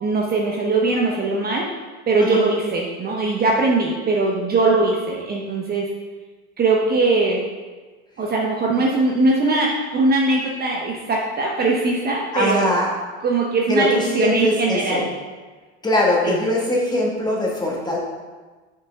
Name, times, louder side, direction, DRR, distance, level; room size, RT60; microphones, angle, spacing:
voice 1, 0.0-1.7 2.1-5.9 6.6-7.4 8.2-12.7 13.2-15.1 16.2-16.4, right 3 dB, 25° right, -1 dB, 0.9 m, -20 dB
voice 2, 12.3-12.9 13.7-15.0 15.8-18.0, left 1 dB, 10° left, -3 dB, 1.6 m, -21 dB
6.5 x 5.8 x 3.5 m, 1.3 s
supercardioid pair, 105°, 34 cm